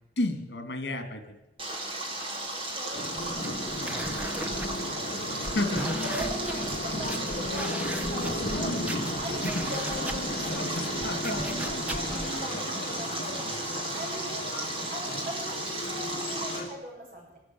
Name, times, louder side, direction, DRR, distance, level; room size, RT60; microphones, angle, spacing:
voice 1, 0.2-1.4 3.8-4.0 5.5-6.0 10.5-12.0, left 1 dB, 75° left, 9 dB, 2.5 m, -32 dB
Stream, 1.6-16.6, right 2 dB, 30° right, 4.2 m, -35 dB
voice 2, 2.1-5.4 6.0-8.9 9.2-10.6 12.1-17.4, right 1 dB, 55° right, -2 dB, 7.9 m, -41 dB
sound 1, 2.9-16.7, left 1 dB, 55° left, 2.2 m, -35 dB
sound 2, 3.2-12.3, right 1 dB, 10° right, 1.3 m, -39 dB
24.5 x 13.5 x 9.3 m, 0.93 s
head